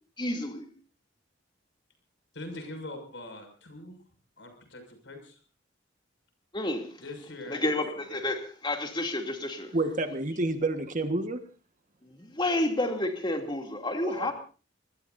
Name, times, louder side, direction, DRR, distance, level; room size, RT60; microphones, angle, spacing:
voice 1, 0.2-0.7 6.5-6.9 7.5-9.7 12.0-14.3, left 1 dB, 25° left, 3 dB, 2.8 m, -30 dB
voice 2, 2.3-4.0 4.4-5.4 7.0-7.8 8.1-8.3, left 1 dB, 75° left, 6 dB, 6.4 m, -43 dB
voice 3, 9.7-11.4 14.0-14.3, right 2 dB, 45° right, 7 dB, 1.5 m, -29 dB
25.5 x 20.5 x 2.7 m, 0.37 s
head